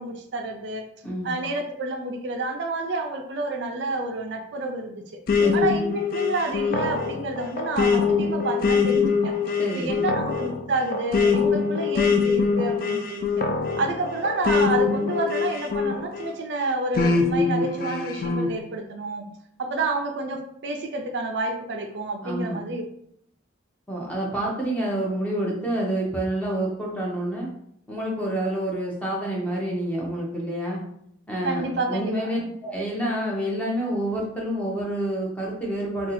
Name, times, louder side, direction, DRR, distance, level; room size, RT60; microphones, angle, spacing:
voice 1, 0.0-0.9 1.2-5.2 5.5-9.3 9.7-13.4 13.8-19.3 19.6-22.8 31.4-32.4, right 2 dB, 60° right, 3 dB, 0.4 m, -29 dB
voice 2, 1.0-1.3 5.4-5.7 9.6-9.9 22.2-22.6 23.9-27.5 27.9-30.8 31.3-36.1, right 1 dB, 5° left, -3 dB, 0.7 m, -28 dB
sound 1, 5.3-16.3 17.0-18.5, left 5 dB, 45° left, 0.3 m, -23 dB
2.6 x 2.3 x 4.0 m, 0.70 s
head